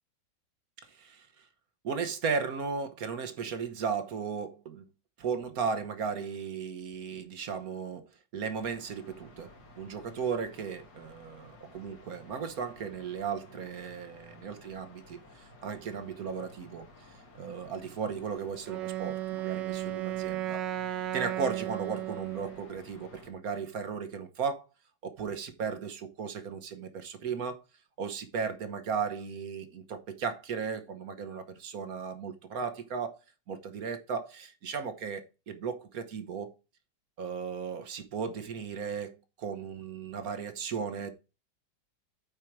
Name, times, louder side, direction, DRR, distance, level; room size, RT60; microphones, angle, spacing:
voice 1, 0.8-1.4 1.8-4.9 5.2-8.1 8.3-9.5 9.8-20.6 21.1-24.6 25.0-27.6 28.0-33.2 33.5-36.5 37.2-41.1, right 6 dB, 55° right, 1.3 m, -36 dB
sound 1, 8.6-23.3, left 2 dB, 75° left, 2.6 m, -54 dB
Wind instrument woodwind instrument, 18.7-22.6, right 13 dB, 75° right, 1.4 m, -34 dB
8.7 x 4.5 x 4.6 m
omnidirectional pair, 2.0 m